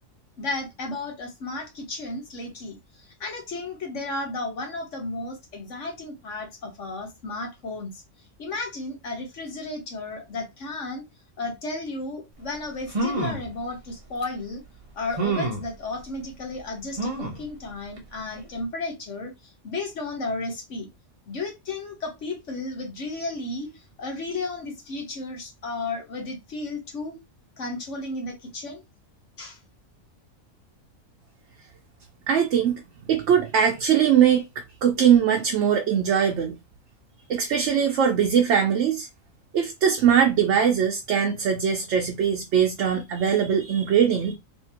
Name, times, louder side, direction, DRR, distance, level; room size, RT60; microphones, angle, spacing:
voice 1, 0.4-7.9 8.4-11.0 11.4-14.6 14.9-20.9 21.3-27.2 27.6-28.8 29.4-29.6, left 3 dB, 65° left, 1.3 m, -33 dB
sound 1, 12.5-12.6 12.9-13.5 14.2-14.3 15.2-15.7 17.0-17.4 18.0-18.1 18.4-18.5, right 3 dB, 35° right, 0.6 m, -27 dB
voice 2, 32.3-34.4 34.8-36.5 37.3-39.1 39.5-44.3, right 8 dB, 65° right, 0.9 m, -21 dB
3.5 x 2.7 x 2.8 m
omnidirectional pair, 1.4 m